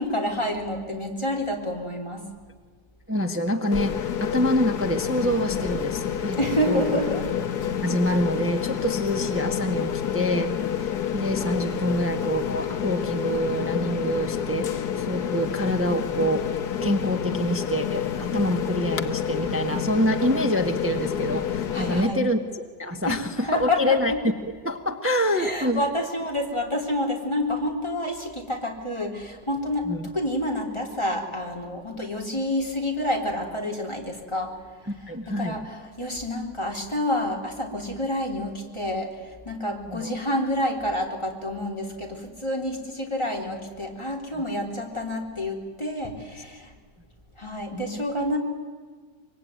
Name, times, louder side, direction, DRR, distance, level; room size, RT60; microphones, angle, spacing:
voice 1, 0.0-2.2 6.4-7.2 21.7-22.2 23.1-24.2 25.4-29.8 30.1-34.6 35.3-46.7 47.4-48.4, left 1 dB, 15° left, 1 dB, 3.7 m, -28 dB
voice 2, 3.1-6.4 6.7-7.0 7.8-16.4 16.8-22.4 22.8-24.3 24.6-25.8 29.8-30.1 35.1-35.6 39.9-40.1 47.7-48.0, equal, 10° right, 4 dB, 1.3 m, -26 dB
sound 1, 3.7-22.0, left 9 dB, 65° left, 1.7 m, -28 dB
25.0 x 23.5 x 9.3 m, 1.5 s
omnidirectional pair, 1.8 m